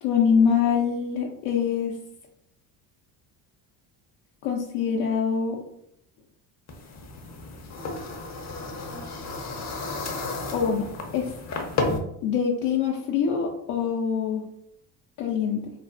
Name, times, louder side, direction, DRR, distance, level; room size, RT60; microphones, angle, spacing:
voice 1, 0.0-2.0 4.4-5.6 10.5-10.9 11.1-11.3 12.2-14.4 15.2-15.7, left 6 dB, 75° left, -1 dB, 0.6 m, -24 dB
sound 1, 6.7-12.0, left 3 dB, 35° left, 0.6 m, -32 dB
3.2 x 2.0 x 2.5 m, 0.72 s
supercardioid pair, 90°, 50 cm